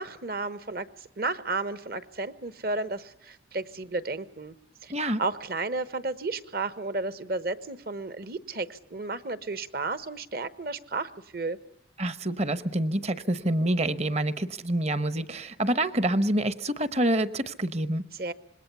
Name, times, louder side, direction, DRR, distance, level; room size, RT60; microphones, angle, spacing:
voice 1, 0.0-4.5 4.8-4.9 5.2-11.6 18.1-18.3, right 3 dB, 50° right, 13 dB, 1.2 m, -33 dB
voice 2, 4.9-5.2 12.0-18.0, right 1 dB, 35° right, 14 dB, 1.0 m, -27 dB
26.0 x 21.0 x 6.9 m, 0.71 s
head